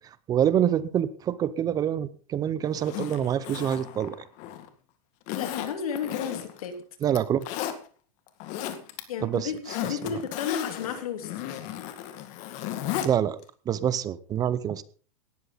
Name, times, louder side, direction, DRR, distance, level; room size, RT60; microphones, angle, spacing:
voice 1, 0.3-4.2 7.0-7.5 9.2-9.5 13.0-13.4 13.7-14.8, right 10 dB, 20° right, 17 dB, 0.7 m, -26 dB
Zipper (clothing), 2.7-4.7 5.3-6.7 7.0-7.8 8.3-9.0 9.3-13.1 13.4-13.5, left 11 dB, 40° left, 2.1 m, -34 dB
voice 2, 5.3-6.8 9.1-11.4, left 8 dB, 75° left, 7 dB, 3.7 m, -33 dB
18.0 x 13.0 x 4.0 m, 0.41 s
supercardioid pair, 155°, 19 cm